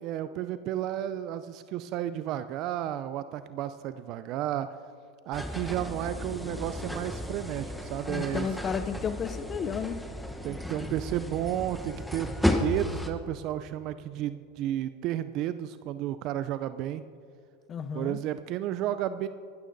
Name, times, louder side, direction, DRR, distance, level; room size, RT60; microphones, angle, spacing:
voice 1, 0.0-4.7 5.3-8.5 10.4-17.0 17.9-19.3, right 12 dB, 50° right, 12 dB, 0.3 m, -32 dB
sound 1, 5.3-13.1, left 1 dB, ahead, 0.9 m, -33 dB
voice 2, 8.1-10.1 17.7-18.2, left 7 dB, 30° left, 13 dB, 0.5 m, -33 dB
18.0 x 13.0 x 2.6 m, 2.3 s
hypercardioid pair, 115°, 0 cm